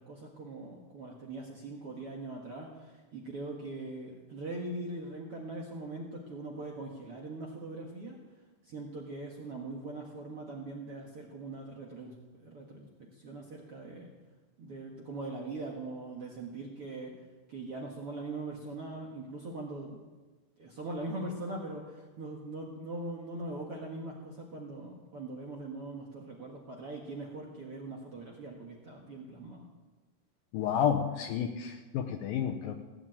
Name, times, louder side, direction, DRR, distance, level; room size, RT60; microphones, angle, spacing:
voice 1, 0.0-8.2 8.6-12.1 12.4-12.9 13.2-14.1 14.6-17.1 17.5-20.0 20.6-29.7, right 2 dB, 55° right, -1 dB, 1.7 m, -41 dB
voice 2, 30.5-32.8, left 8 dB, 75° left, 6 dB, 2.2 m, -30 dB
17.5 x 8.7 x 8.7 m, 1.2 s
omnidirectional pair, 4.8 m